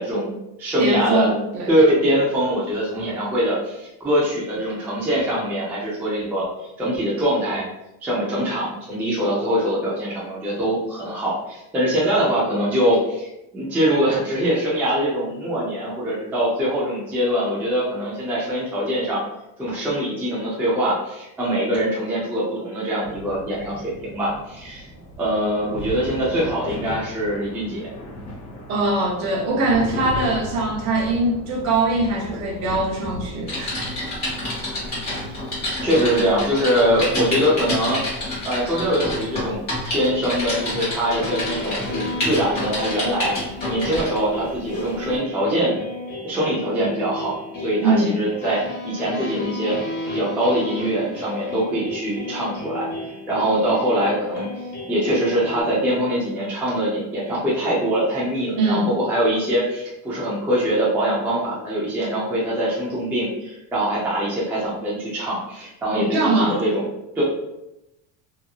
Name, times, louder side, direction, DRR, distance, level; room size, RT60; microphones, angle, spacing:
voice 1, 0.0-1.3 1.7-7.6 8.0-19.2 19.6-24.9 25.2-27.9 35.8-38.0 38.4-45.8 46.2-49.8 50.1-52.9 53.3-54.5 54.9-66.8 67.2-67.3, equal, 5° right, -7 dB, 0.3 m, -23 dB
voice 2, 0.8-1.7 28.7-33.8 47.8-48.2 58.6-58.9 66.0-66.6, right 2 dB, 45° right, 0 dB, 0.7 m, -22 dB
sound 1, 23.0-41.5, equal, 80° left, 1.2 m, -38 dB
Typing, 33.5-44.2 44.7-44.9, left 1 dB, 25° left, 1.2 m, -28 dB
sound 2, 40.1-55.6, left 2 dB, 55° left, 1.0 m, -33 dB
2.8 x 2.6 x 2.2 m, 0.90 s
cardioid pair, 170°, 38 cm